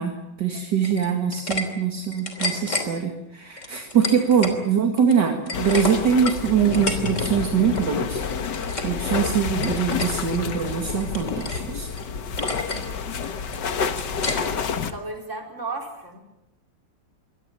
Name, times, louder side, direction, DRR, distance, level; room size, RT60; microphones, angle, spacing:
voice 1, 0.0-8.2 8.8-11.9, right 7 dB, 65° right, 3 dB, 2.6 m, -23 dB
sound 1, 0.8-1.6 2.0-2.9 3.6-4.6 4.9-7.3 7.6-7.9 8.3-9.0 9.2-10.1 10.6-11.7 12.0-12.1 12.4-12.9 13.2-14.6, left 3 dB, 40° left, 3.5 m, -30 dB
sound 2, 5.5-14.9, left 6 dB, 65° left, 2.0 m, -29 dB
voice 2, 14.3-16.2, right 3 dB, 40° right, 2 dB, 5.0 m, -35 dB
24.5 x 18.0 x 9.0 m, 0.91 s
omnidirectional pair, 2.0 m